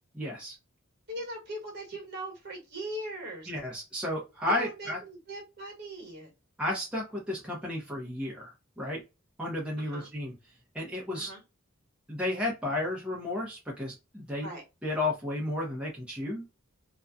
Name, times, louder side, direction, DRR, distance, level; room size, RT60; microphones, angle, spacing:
voice 1, 0.2-0.6 3.5-5.0 6.6-9.0 9.4-10.3 10.7-11.3 12.1-14.5 14.8-16.5, left 1 dB, 5° right, -4 dB, 0.6 m, -33 dB
voice 2, 1.1-3.5 4.5-6.3 9.8-10.1 11.2-11.4 14.4-14.6, right 1 dB, 50° right, 0 dB, 1.1 m, -40 dB
2.5 x 2.2 x 2.3 m, 0.26 s
head